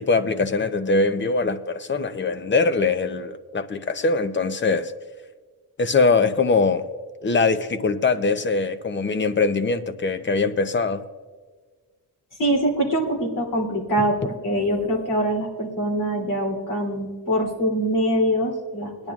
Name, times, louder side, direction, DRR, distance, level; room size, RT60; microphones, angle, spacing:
voice 1, 0.0-4.9 5.8-6.8 7.2-11.0, left 4 dB, 30° left, 10 dB, 0.7 m, -22 dB
voice 2, 12.4-19.1, right 1 dB, 50° left, 0 dB, 3.1 m, -24 dB
20.5 x 10.5 x 2.4 m, 1.5 s
wide cardioid pair, 115°, 39 cm